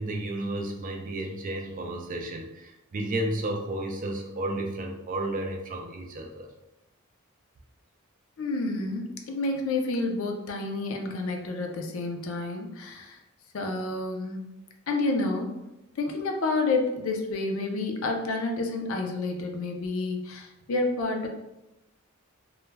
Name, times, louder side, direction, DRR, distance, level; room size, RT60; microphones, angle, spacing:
voice 1, 0.0-6.5, right 1 dB, 40° right, 2 dB, 0.4 m, -32 dB
voice 2, 8.4-13.2 13.5-14.5 14.9-15.5 16.0-21.3, left 3 dB, 70° left, 2 dB, 0.4 m, -29 dB
2.3 x 2.1 x 3.2 m, 0.92 s
head